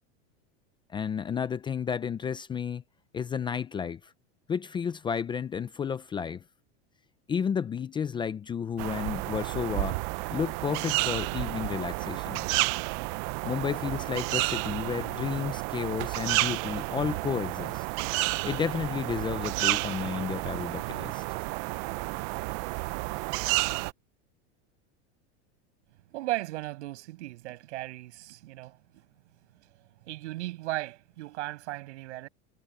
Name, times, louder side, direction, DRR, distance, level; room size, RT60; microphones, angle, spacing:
voice 1, 0.9-2.8 3.1-4.1 4.5-6.4 7.3-10.0 10.3-12.5 13.4-17.8 18.4-21.2, left 7 dB, 15° left, 0.5 m, -32 dB
sound 1, 8.8-23.9, right 24 dB, 45° right, 0.6 m, -31 dB
voice 2, 26.1-29.0 29.5-32.3, right 18 dB, 80° right, 6.2 m, -37 dB
supercardioid pair, 155°, 34 cm